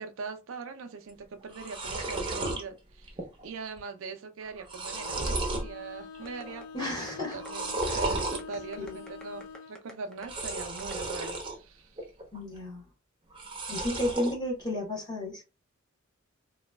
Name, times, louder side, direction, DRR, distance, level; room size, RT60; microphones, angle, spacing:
voice 1, 0.0-11.9, right 4 dB, 70° right, 0.5 m, -41 dB
sound 1, 1.1-1.2 1.4-2.6 3.1-3.5 3.7-3.8 4.4-5.7 6.1-6.6 7.3-8.4 10.2-11.6 12.0-12.6 13.3-14.4, right 2 dB, 25° right, 0.7 m, -33 dB
Bowed string instrument, 4.9-9.8, left 5 dB, 85° left, 0.3 m, -46 dB
sound 2, 6.2-11.2, equal, 5° left, 0.5 m, -49 dB
voice 2, 6.7-7.4 7.9-8.1 8.8-9.0 12.3-12.8 13.7-15.4, left 1 dB, 20° left, 1.1 m, -33 dB
3.0 x 2.3 x 2.2 m
head